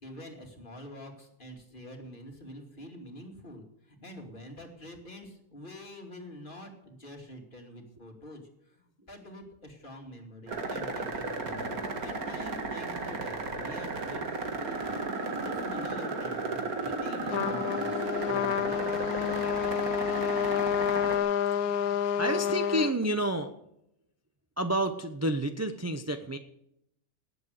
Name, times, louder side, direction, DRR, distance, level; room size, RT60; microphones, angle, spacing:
voice 1, 0.0-15.0 15.4-19.1, equal, 35° left, 2 dB, 2.7 m, -46 dB
sound 1, 10.5-21.2, right 3 dB, 70° right, 2.3 m, -34 dB
Trumpet, 17.3-22.9, left 8 dB, 75° left, 1.2 m, -29 dB
voice 2, 22.2-23.5 24.6-26.4, right 1 dB, 15° right, 7 dB, 0.6 m, -30 dB
18.5 x 8.2 x 6.5 m, 0.78 s
omnidirectional pair, 1.6 m